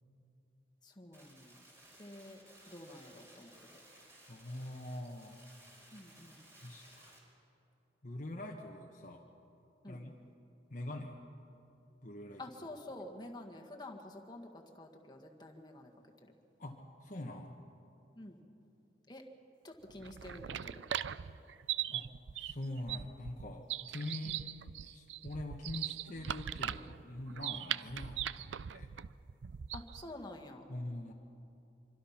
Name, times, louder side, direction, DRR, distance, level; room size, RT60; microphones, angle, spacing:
voice 1, 0.8-1.6 2.0-3.7 5.9-6.5 9.8-10.0 12.4-15.9 16.2-16.3 18.1-18.4 19.1-19.2 19.6-20.8 24.2-24.4 29.7-30.6, left 1 dB, 20° left, 3 dB, 1.8 m, -49 dB
sound 1, 1.1-7.2, right 1 dB, 15° right, 4.2 m, -59 dB
voice 2, 4.3-5.4 6.6-7.1 8.0-9.3 9.9-10.1 10.7-11.2 12.0-12.4 16.6-17.6 21.9-22.1 22.3-24.4 24.8-28.9 30.7-31.1, left 1 dB, 40° left, 1 dB, 1.3 m, -44 dB
sound 2, 19.9-30.1, right 10 dB, 70° right, 0.5 m, -40 dB
25.5 x 25.0 x 5.9 m, 2.9 s
head